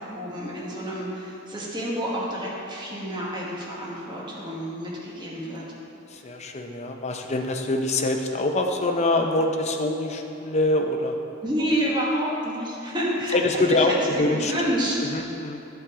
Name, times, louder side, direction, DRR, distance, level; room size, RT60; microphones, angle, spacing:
voice 1, 0.0-5.6 11.4-15.0, equal, 25° right, -5 dB, 1.4 m, -29 dB
voice 2, 6.1-11.2 13.3-14.5 15.1-15.6, left 2 dB, 35° left, 3 dB, 0.6 m, -24 dB
11.0 x 5.8 x 3.7 m, 2.8 s
head